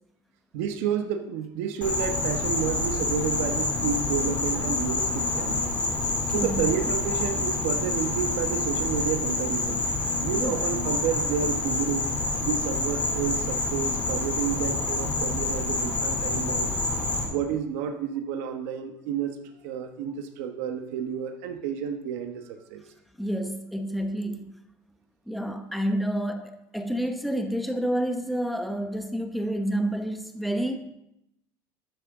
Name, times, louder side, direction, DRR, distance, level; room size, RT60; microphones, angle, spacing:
voice 1, 0.5-5.7 6.3-9.8 10.2-12.1 12.4-16.7 17.3-22.8, right 8 dB, 80° right, 5 dB, 1.4 m, -30 dB
Insect, 1.8-17.2, left 3 dB, 20° left, 3.2 m, -27 dB
voice 2, 6.3-6.7 10.3-10.6 23.2-24.5 25.3-30.8, right 1 dB, ahead, 5 dB, 0.9 m, -29 dB
13.5 x 12.0 x 3.8 m, 0.81 s
cardioid pair, 165°, 8 cm